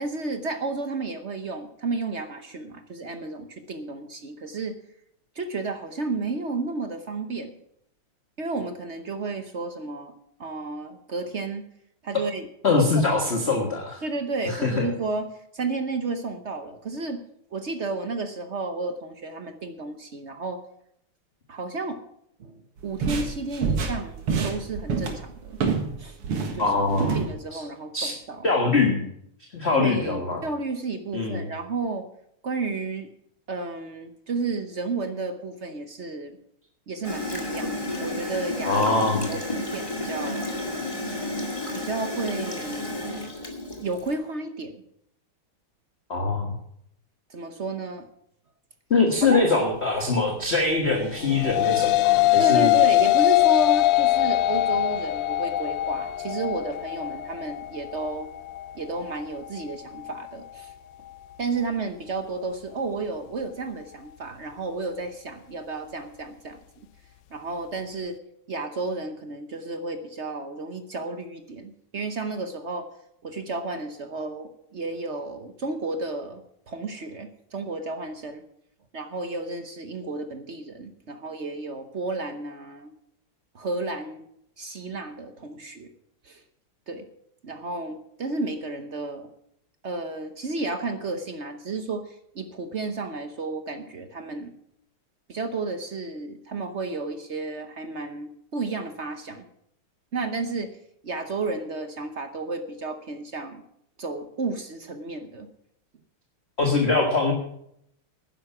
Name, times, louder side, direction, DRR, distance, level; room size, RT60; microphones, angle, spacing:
voice 1, 0.0-4.8 5.4-7.6 8.4-10.1 10.4-11.6 12.0-12.5 12.9-13.3 14.0-17.2 17.5-20.6 21.5-22.0 22.4-25.6 26.0-26.2 26.5-26.7 27.2-28.5 29.7-32.1 32.4-33.1 33.5-36.4 36.9-38.8 39.3-40.5 41.2-41.4 41.7-43.1 43.8-44.8 47.3-48.1 49.2-49.4 52.4-58.3 58.7-60.7 61.4-66.9 67.3-68.2 68.5-72.9 73.2-78.4 78.9-82.9 83.5-84.2 84.6-85.9 86.2-86.4 86.9-87.1 87.4-89.3 89.8-94.5 95.3-99.4 100.1-100.8 101.0-103.6 104.0-105.5, right 3 dB, 50° right, 7 dB, 0.8 m, -32 dB
voice 2, 12.6-14.0 14.5-14.9 26.6-27.2 27.5-27.6 27.9-28.1 28.4-29.0 29.5-30.4 31.1-31.5 38.7-39.2 46.1-46.5 48.9-52.8 106.6-107.3, left 3 dB, 30° left, 1 dB, 1.7 m, -23 dB
sound 1, 22.8-25.9 26.2-27.3, right 5 dB, 80° right, 2.6 m, -27 dB
Gurgling / Toilet flush, 37.0-44.1, left 2 dB, 15° left, 2.0 m, -31 dB
sound 2, 51.1-60.3, left 15 dB, 85° left, 1.6 m, -22 dB
11.5 x 10.5 x 5.9 m, 0.72 s
omnidirectional pair, 2.4 m